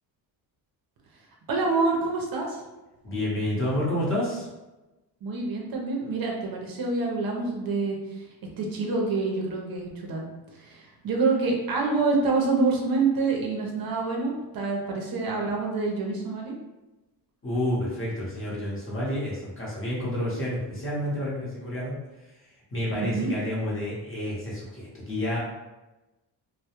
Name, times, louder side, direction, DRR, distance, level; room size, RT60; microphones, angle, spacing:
voice 1, 1.5-2.6 5.2-8.2 8.6-10.2 10.5-16.5 22.9-23.3, right 3 dB, 55° right, 0 dB, 0.6 m, -27 dB
voice 2, 3.0-4.5 17.4-21.9 22.7-25.4, left 1 dB, 30° left, -5 dB, 0.8 m, -29 dB
2.2 x 2.1 x 2.8 m, 1.1 s
cardioid pair, 110°, 43 cm